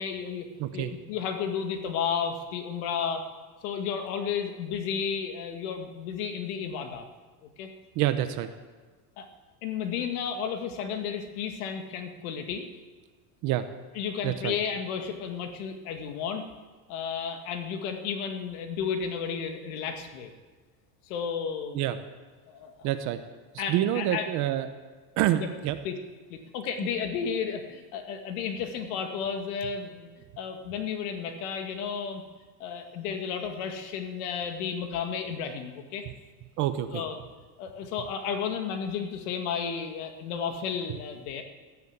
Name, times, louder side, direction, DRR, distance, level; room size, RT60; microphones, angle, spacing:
voice 1, 0.0-0.5 0.7-3.3 3.6-7.1 7.6-7.7 9.2-9.3 9.6-12.7 13.9-16.4 16.9-20.3 21.1-21.8 22.5-22.9 23.6-24.3 25.4-25.5 25.8-26.0 26.3-30.1 30.4-32.2 32.6-36.0 36.9-37.2 37.6-41.4, left 7 dB, 70° left, 6 dB, 2.1 m, -32 dB
voice 2, 7.9-8.5 13.4-13.6 14.2-14.5 21.7-22.0 22.8-23.2 23.7-24.7 25.2-25.8 36.6-37.0, right 12 dB, 40° right, 10 dB, 0.9 m, -27 dB
16.0 x 10.5 x 8.1 m, 1.3 s
cardioid pair, 175°, 46 cm